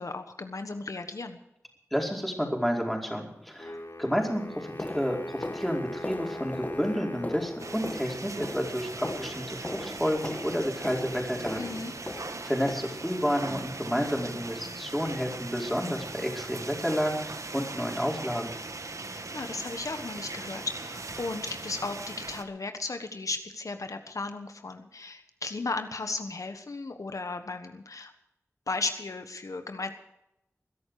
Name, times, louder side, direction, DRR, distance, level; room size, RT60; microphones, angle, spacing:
voice 1, 0.0-1.4 11.6-11.9 19.1-28.1 28.7-29.9, left 3 dB, 85° left, 7 dB, 1.3 m, -35 dB
voice 2, 1.9-11.8 12.4-18.5, equal, ahead, 0 dB, 4.7 m, -30 dB
sound 1, 3.5-3.6 4.2-13.4 13.9-14.2 14.5-14.7 15.1-15.3 15.7-15.8 16.3-16.4, left 1 dB, 30° left, 1.1 m, -40 dB
Wind instrument woodwind instrument, 3.6-8.6, left 1 dB, 60° left, 5.5 m, -41 dB
sound 2, 7.6-22.4, right 3 dB, 70° right, 1.3 m, -40 dB
21.5 x 11.5 x 4.9 m, 0.84 s
wide cardioid pair, 50°, 6 cm